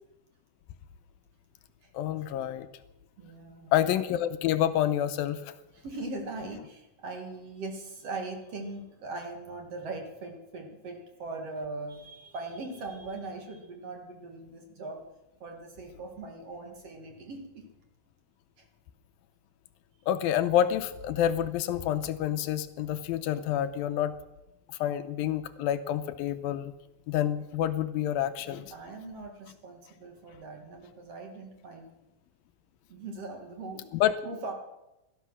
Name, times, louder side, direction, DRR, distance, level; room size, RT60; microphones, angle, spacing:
voice 1, 1.9-2.7 3.7-5.5 20.1-24.1 24.7-26.7 27.1-28.7 33.9-34.1, left 11 dB, 80° left, 11 dB, 2.4 m, -28 dB
voice 2, 3.2-3.7 5.7-15.0 15.4-17.7 18.6-18.7 28.4-31.9 32.9-33.9 34.2-34.5, right 3 dB, 50° right, 3 dB, 2.4 m, -40 dB
17.5 x 13.0 x 6.2 m, 0.96 s
omnidirectional pair, 4.3 m